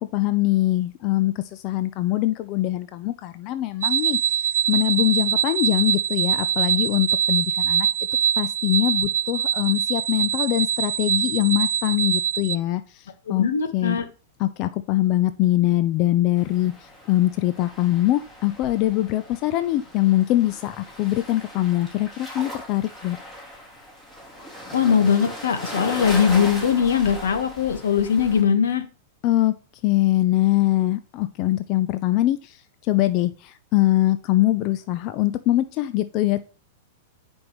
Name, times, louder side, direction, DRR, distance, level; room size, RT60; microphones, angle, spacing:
voice 1, 0.1-4.2 4.7-7.9 8.4-13.5 13.7-14.0 14.4-23.2 29.2-29.5 29.8-32.6 32.9-36.4, left 15 dB, 45° left, 11 dB, 0.5 m, -23 dB
sound 1, 3.8-12.6, right 9 dB, 80° right, 0.5 m, -23 dB
voice 2, 13.3-14.0 24.7-28.8, left 7 dB, 85° left, 9 dB, 1.3 m, -20 dB
sound 2, 16.4-28.4, equal, 15° left, 3.0 m, -38 dB
9.6 x 5.3 x 3.1 m, 0.36 s
hypercardioid pair, 130°, 0 cm